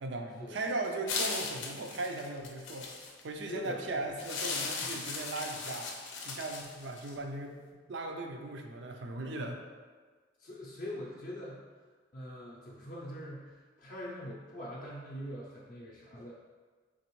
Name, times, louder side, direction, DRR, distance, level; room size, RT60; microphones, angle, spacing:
voice 1, 0.0-2.9 3.2-5.9 6.2-7.5 7.9-9.6, right 2 dB, 75° right, 3 dB, 0.5 m, -38 dB
sound 1, 1.1-3.2 4.2-7.1, left 4 dB, 90° left, 0.6 m, -37 dB
voice 2, 3.5-4.1 4.8-5.0 10.4-11.6 12.1-16.3, left 1 dB, 45° left, -5 dB, 0.5 m, -43 dB
3.8 x 3.4 x 3.0 m, 1.5 s
head